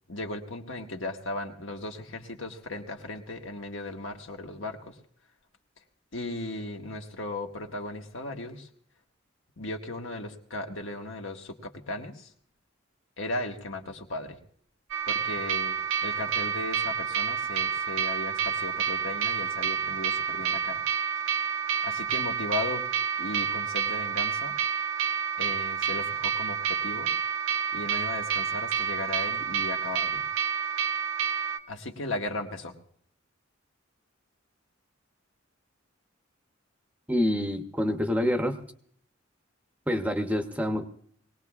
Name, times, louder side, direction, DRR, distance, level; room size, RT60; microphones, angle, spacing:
voice 1, 0.1-5.0 6.1-8.7 9.6-12.3 13.2-14.4 15.1-20.8 21.2-22.8 23.2-24.6 25.3-27.1 27.7-30.2 31.7-32.7, left 2 dB, 70° left, 3 dB, 1.4 m, -36 dB
sound 1, 14.9-31.6, right 7 dB, 75° right, 0.7 m, -29 dB
voice 2, 37.1-38.6 39.9-40.9, left 1 dB, 5° right, 6 dB, 0.7 m, -27 dB
22.0 x 18.5 x 2.4 m, 0.63 s
head